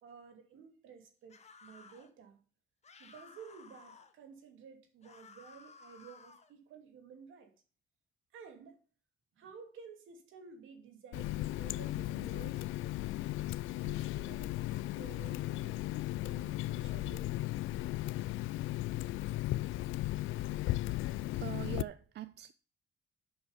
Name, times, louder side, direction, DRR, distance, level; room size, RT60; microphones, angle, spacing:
voice 1, 0.0-2.4 3.0-7.5 8.3-8.8 9.4-12.7 13.8-15.8 16.1-17.3 19.9-20.0, right 6 dB, 80° right, 2.5 m, -53 dB
sound 1, 1.3-2.1 2.8-4.1 5.0-6.5, left 4 dB, 35° left, 1.4 m, -56 dB
Water tap faucet, 11.1-21.8, left 16 dB, 85° left, 0.4 m, -36 dB
voice 2, 21.3-22.5, right 12 dB, 60° right, 0.5 m, -42 dB
7.9 x 6.3 x 7.0 m
cardioid pair, 90°, 20 cm